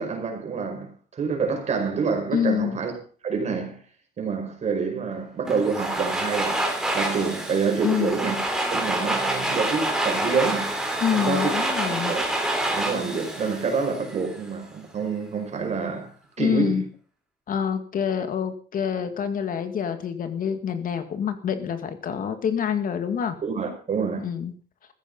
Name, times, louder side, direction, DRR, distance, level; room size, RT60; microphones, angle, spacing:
voice 1, 0.0-2.9 3.2-3.8 4.2-6.7 6.9-8.4 8.7-10.7 11.1-12.3 12.7-16.1 16.4-16.9 23.4-24.2, right 5 dB, 40° right, 5.4 m, -27 dB
voice 2, 2.3-2.8 7.8-8.2 11.0-12.2 16.4-16.8 17.5-23.4 24.2-24.5, left 8 dB, 55° left, 2.1 m, -26 dB
Domestic sounds home sounds, 5.5-14.4, right 1 dB, 5° right, 3.7 m, -27 dB
15.5 x 14.5 x 5.5 m
cardioid pair, 170°, 17 cm